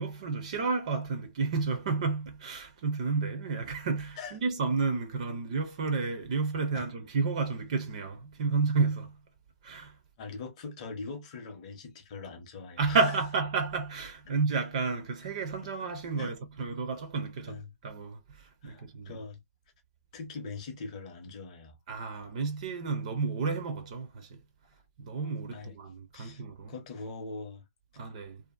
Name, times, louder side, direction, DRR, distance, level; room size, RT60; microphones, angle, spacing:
voice 1, 0.0-9.2 9.6-10.0 12.8-19.2 21.9-24.4 25.0-26.7 28.0-28.4, right 4 dB, 25° right, 0.4 m, -31 dB
voice 2, 10.2-13.0 16.2-16.4 17.5-17.7 18.6-19.4 20.1-21.8 25.5-25.8 26.1-26.4 26.7-27.6, left 4 dB, 25° left, 0.6 m, -42 dB
2.6 x 2.4 x 2.3 m
hypercardioid pair, 160°, 8 cm